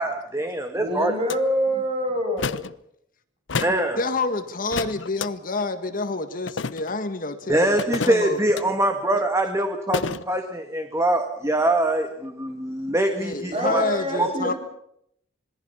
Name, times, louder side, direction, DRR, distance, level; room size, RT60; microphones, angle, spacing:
voice 1, 0.0-1.1 3.6-4.0 7.5-13.8 14.2-14.3, right 1 dB, 15° right, 6 dB, 1.8 m, -23 dB
voice 2, 0.7-2.7 13.5-14.6, equal, 30° right, 3 dB, 6.6 m, -26 dB
sound 1, 1.3-1.4 2.4-2.7 3.5-3.8 4.7-5.3 6.5-7.0 7.8-8.6 9.9-10.2, left 4 dB, 75° left, 0.8 m, -29 dB
voice 3, 4.0-8.4 13.2-14.5, left 3 dB, 45° left, 8 dB, 1.8 m, -28 dB
26.5 x 21.5 x 5.7 m, 0.72 s
head